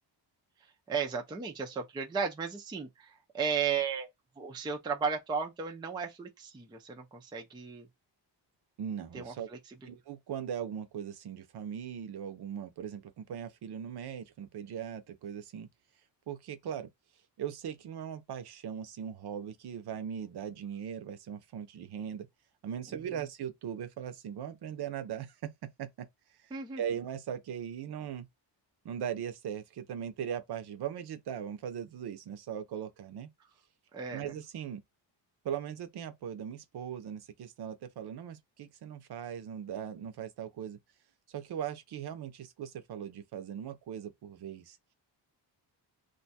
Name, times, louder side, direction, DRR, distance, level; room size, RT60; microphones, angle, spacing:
voice 1, 0.9-4.1 4.4-7.9 9.1-9.3 26.5-26.8 33.9-34.3, right 6 dB, 10° right, 0.4 m, -34 dB
voice 2, 8.8-9.5 9.9-15.7 16.3-16.9 17.4-22.3 22.6-26.1 26.8-28.3 28.8-33.3 34.1-34.8 35.4-40.8 41.3-44.8, right 9 dB, 60° right, 0.7 m, -39 dB
2.6 x 2.3 x 4.0 m
wide cardioid pair, 165°, 45 cm